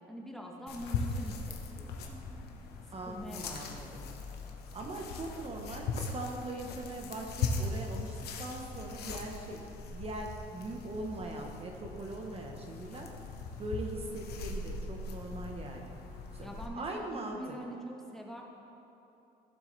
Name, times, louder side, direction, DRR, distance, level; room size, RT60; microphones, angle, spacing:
voice 1, 0.1-2.5 2.9-4.1 16.4-18.4, equal, ahead, -1 dB, 1.3 m, -44 dB
sound 1, 0.7-16.7, left 4 dB, 70° left, 1.1 m, -40 dB
voice 2, 2.9-4.1 4.7-9.6 9.9-13.1 13.6-16.0 16.3-17.4, right 2 dB, 35° right, 1 dB, 1.0 m, -41 dB
15.5 x 7.2 x 3.3 m, 3.0 s
cardioid pair, 110°, 17 cm